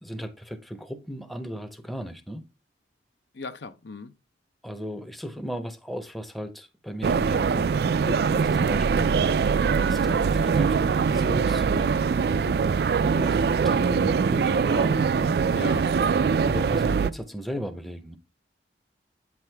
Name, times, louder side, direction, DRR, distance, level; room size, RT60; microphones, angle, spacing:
voice 1, 0.0-2.5 4.6-7.7 8.0-12.0 13.0-15.4 16.5-18.2, equal, ahead, 0.6 m, -36 dB
voice 2, 3.3-4.1 12.3-12.6 15.5-15.9, left 3 dB, 70° left, 0.6 m, -38 dB
sound 1, 7.0-17.1, right 5 dB, 55° right, 0.3 m, -23 dB
8.5 x 6.1 x 3.4 m
head